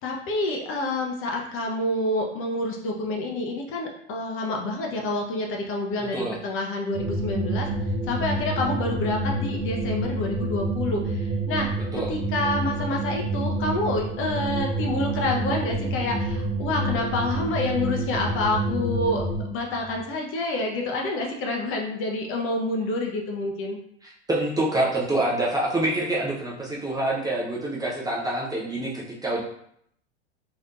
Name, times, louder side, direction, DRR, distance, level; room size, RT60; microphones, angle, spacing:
voice 1, 0.0-7.7 8.0-11.7 12.1-23.8, left 2 dB, 35° left, 1 dB, 0.7 m, -28 dB
sound 1, 6.9-19.4, right 2 dB, 55° right, 0.9 m, -28 dB
sound 2, 10.0-20.0, left 3 dB, 75° right, 1.2 m, -46 dB
voice 2, 24.3-29.4, right 1 dB, 10° right, -4 dB, 0.6 m, -26 dB
3.2 x 2.9 x 2.4 m, 0.70 s
hypercardioid pair, 95°, 36 cm